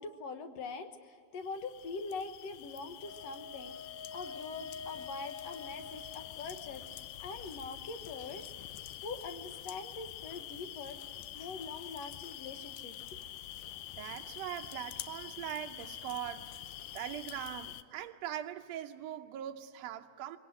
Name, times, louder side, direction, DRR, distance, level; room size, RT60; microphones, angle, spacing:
voice 1, 0.0-8.5 9.0-11.0 11.3-13.0, left 4 dB, 60° left, 2.1 m, -43 dB
sound 1, 1.4-17.8, left 12 dB, 75° left, 2.0 m, -46 dB
Wind instrument woodwind instrument, 3.0-7.1, left 5 dB, 35° left, 3.0 m, -47 dB
voice 2, 14.0-16.6 16.9-20.4, right 11 dB, 75° right, 1.6 m, -41 dB
23.0 x 18.0 x 9.2 m
omnidirectional pair, 3.7 m